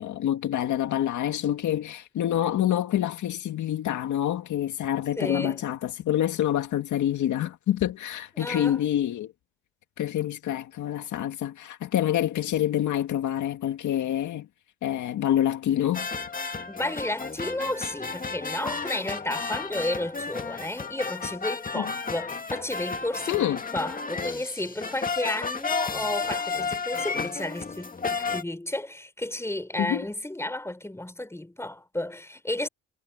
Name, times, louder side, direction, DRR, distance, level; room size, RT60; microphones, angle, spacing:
voice 1, 0.0-9.3 10.0-14.5 14.8-16.1 21.7-21.9 23.3-23.6 29.8-30.0, left 11 dB, 75° left, 2.2 m, -27 dB
voice 2, 5.2-5.6 8.4-8.8 16.7-32.7, left 1 dB, 10° left, 5.4 m, -32 dB
sound 1, 15.9-28.4, left 4 dB, 30° left, 2.0 m, -32 dB
cardioid pair, 90°, 30 cm